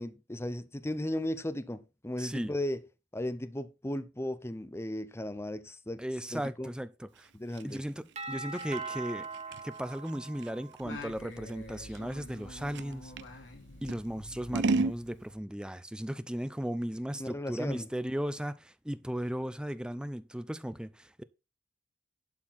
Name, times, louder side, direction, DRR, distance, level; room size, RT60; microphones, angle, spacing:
voice 1, 0.0-2.8 3.1-6.0 6.3-6.7 7.3-7.8 17.2-17.9, left 1 dB, 15° left, 0.8 m, -36 dB
voice 2, 2.2-2.5 6.0-7.3 7.6-9.3 9.6-13.1 13.8-21.2, equal, 5° right, 0.5 m, -36 dB
Scissors, 7.1-13.3 13.9-15.0, right 3 dB, 65° right, 0.6 m, -35 dB
Doorbell, 8.2-11.0, right 4 dB, 35° right, 1.6 m, -41 dB
Singing, 10.8-15.6, left 1 dB, 75° left, 3.0 m, -47 dB
11.5 x 4.5 x 5.7 m
head